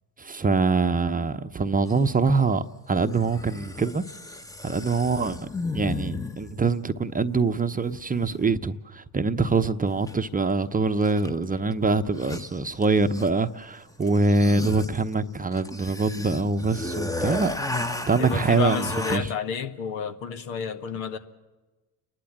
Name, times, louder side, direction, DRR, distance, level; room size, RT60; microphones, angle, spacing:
voice 1, 0.2-4.0 4.6-5.5 5.7-17.5 17.8-18.8 19.1-19.2, right 3 dB, 20° right, 0.9 m, -24 dB
sound 1, 1.9-2.0 3.1-6.6 10.1-10.2 11.0-11.4 11.7-11.8 12.0-13.5 14.0-19.2, left 2 dB, 5° left, 1.0 m, -34 dB
voice 2, 18.2-21.2, left 7 dB, 75° left, 1.7 m, -30 dB
30.0 x 12.0 x 7.5 m
hypercardioid pair, 65°, 46 cm